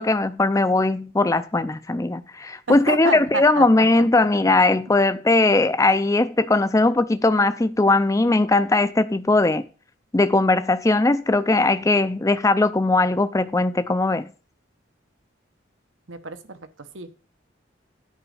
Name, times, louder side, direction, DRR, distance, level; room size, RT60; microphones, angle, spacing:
voice 1, 0.0-9.6 10.1-14.3, left 2 dB, 15° left, 0.4 m, -19 dB
voice 2, 2.7-3.9 16.1-16.6 16.9-17.2, right 3 dB, 80° right, 1.1 m, -29 dB
9.8 x 5.1 x 7.1 m
head